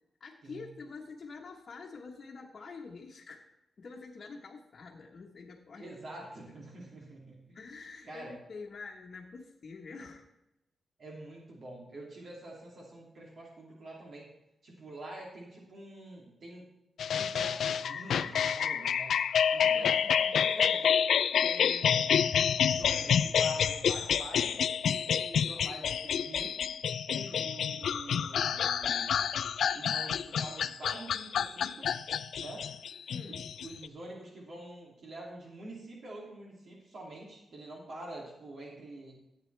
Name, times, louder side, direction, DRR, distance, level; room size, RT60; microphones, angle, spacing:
voice 1, 0.2-3.5 3.8-5.9 7.5-10.3 19.6-20.0 33.1-33.4, left 4 dB, 50° left, -3 dB, 1.3 m, -46 dB
voice 2, 5.7-7.6 8.1-8.3 11.0-14.3 14.6-16.6 17.1-19.2 19.5-20.9 21.4-22.1 22.6-24.6 25.0-26.6 27.1-29.2 29.7-32.0 32.4-32.7 33.3-39.2, right 1 dB, 55° right, -3 dB, 2.7 m, -46 dB
sound 1, 17.0-33.9, left 8 dB, 75° left, 0.4 m, -28 dB
14.5 x 8.8 x 3.4 m, 0.93 s
wide cardioid pair, 130°, 0 cm